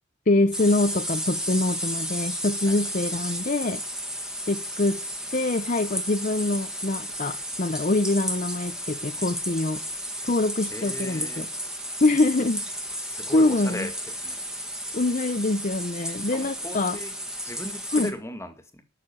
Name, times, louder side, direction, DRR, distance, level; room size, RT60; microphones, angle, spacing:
voice 1, 0.3-3.8 4.5-5.0 5.3-9.8 10.2-11.5 12.0-12.8 13.3-13.9 14.9-17.0 17.9-18.1, left 2 dB, 40° left, 9 dB, 0.7 m, -24 dB
sound 1, 0.5-18.1, equal, 5° right, 1.7 m, -33 dB
voice 2, 10.7-11.5 13.0-13.9 14.2-14.5 16.3-17.1 17.4-18.8, left 1 dB, 15° left, 7 dB, 2.0 m, -37 dB
11.5 x 6.8 x 9.7 m, 0.34 s
head